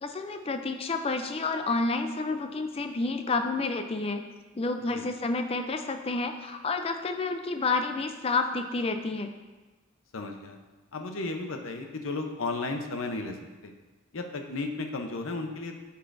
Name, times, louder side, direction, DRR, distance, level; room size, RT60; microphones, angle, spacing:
voice 1, 0.0-4.3 4.5-9.3, left 3 dB, 25° left, 7 dB, 0.4 m, -30 dB
voice 2, 10.1-10.6 10.9-13.3 13.6-13.7 14.1-15.8, left 3 dB, 70° left, 5 dB, 0.7 m, -34 dB
9.9 x 5.6 x 2.6 m, 1.2 s
head